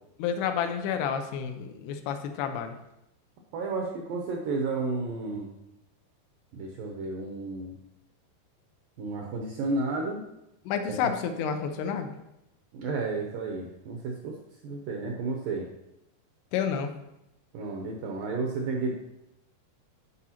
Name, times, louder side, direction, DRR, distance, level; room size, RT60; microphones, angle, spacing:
voice 1, 0.2-2.8 10.7-12.1 16.5-16.9, left 7 dB, 90° left, 7 dB, 2.7 m, -30 dB
voice 2, 3.5-5.5 6.5-7.8 9.0-10.2 12.7-14.3 14.6-15.7 17.5-18.9, right 3 dB, 80° right, 1 dB, 2.0 m, -32 dB
12.5 x 4.9 x 2.9 m, 0.86 s
omnidirectional pair, 4.7 m